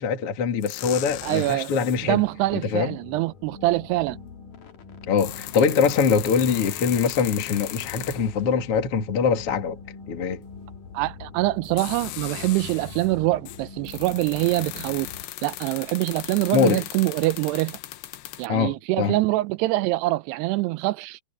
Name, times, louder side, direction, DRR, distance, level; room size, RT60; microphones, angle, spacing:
voice 1, 0.0-2.2 2.5-2.9 5.1-9.8 10.1-10.4 16.5-16.8 18.5-19.2, left 6 dB, 40° left, 2.7 m, -23 dB
sound 1, 0.6-2.1 3.6-3.7 4.9-8.5 10.6-10.7 11.6-13.1 13.5-18.5, left 14 dB, 80° left, 3.1 m, -37 dB
voice 2, 1.2-1.7 2.0-4.2 10.9-15.1 15.4-17.8 18.4-21.2, right 19 dB, 85° right, 2.7 m, -24 dB
sound 2, 1.9-15.2, left 4 dB, 55° left, 3.6 m, -43 dB
omnidirectional pair, 4.8 m